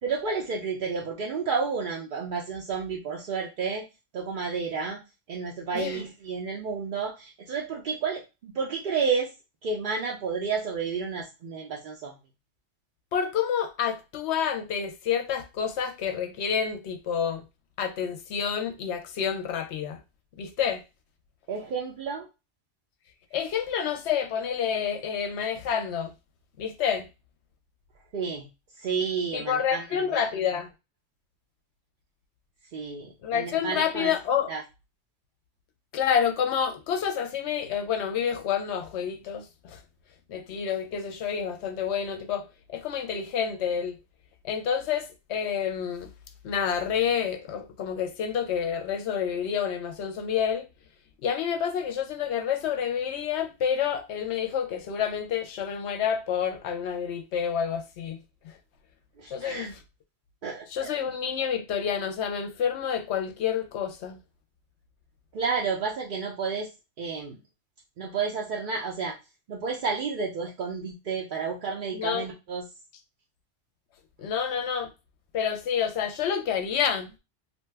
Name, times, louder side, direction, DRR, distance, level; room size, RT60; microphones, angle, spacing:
voice 1, 0.0-3.8 4.1-5.0 5.3-9.3 9.6-12.1 21.5-22.3 28.1-28.5 28.8-29.9 30.1-30.3 32.7-34.1 34.5-34.6 59.2-59.7 60.4-60.9 65.3-66.7 67.0-67.4 68.0-69.2 69.5-72.7, right 5 dB, 55° right, 0.6 m, -31 dB
voice 2, 5.7-6.0 13.1-17.4 17.8-20.0 20.4-20.8 23.3-26.1 26.6-27.1 29.3-30.7 33.2-34.5 35.9-39.8 40.3-44.0 44.4-46.1 46.4-50.7 51.2-58.2 58.4-58.5 59.3-59.8 60.7-64.2 71.9-72.3 74.2-74.9 75.3-77.1, left 8 dB, 75° left, 0.8 m, -28 dB
2.7 x 2.2 x 3.3 m
omnidirectional pair, 1.2 m